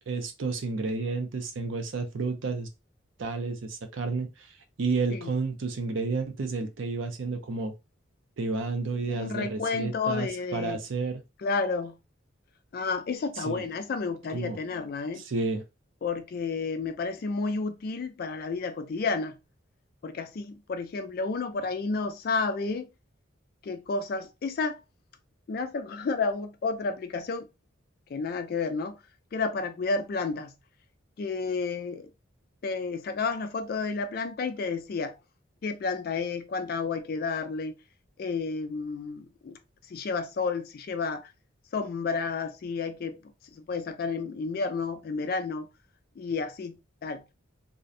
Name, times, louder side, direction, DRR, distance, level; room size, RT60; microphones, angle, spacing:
voice 1, 0.0-2.7 3.2-4.5 4.8-7.7 8.4-11.2 13.4-13.7 14.3-14.6 15.2-15.6, right 3 dB, 70° right, 0.5 m, -31 dB
voice 2, 9.1-10.8 11.4-12.0 12.7-15.2 16.0-19.4 20.0-22.9 23.6-24.8 25.5-27.5 28.1-29.0 29.3-30.5 31.2-32.1 32.6-35.2 35.6-37.7 38.2-39.6 39.9-41.3 41.7-43.2 43.5-45.7 46.2-46.8 47.0-47.2, left 4 dB, 50° left, 0.3 m, -31 dB
2.5 x 2.1 x 2.5 m
head